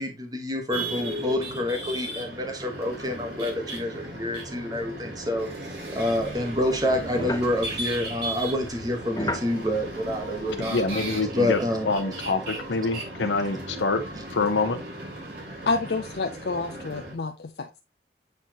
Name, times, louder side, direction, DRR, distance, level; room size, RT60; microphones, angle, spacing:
voice 1, 0.0-5.5 5.9-10.8 11.3-11.9, left 1 dB, 20° right, 1.2 m, -27 dB
sound 1, 0.7-17.1, right 1 dB, 65° right, 3.0 m, -36 dB
sound 2, 5.9-10.9, left 1 dB, 20° left, 1.0 m, -37 dB
voice 2, 10.6-11.6 11.9-14.0 14.3-14.8, left 3 dB, 90° left, 0.9 m, -26 dB
voice 3, 15.7-17.8, left 3 dB, 65° left, 0.5 m, -29 dB
8.1 x 4.2 x 3.0 m
head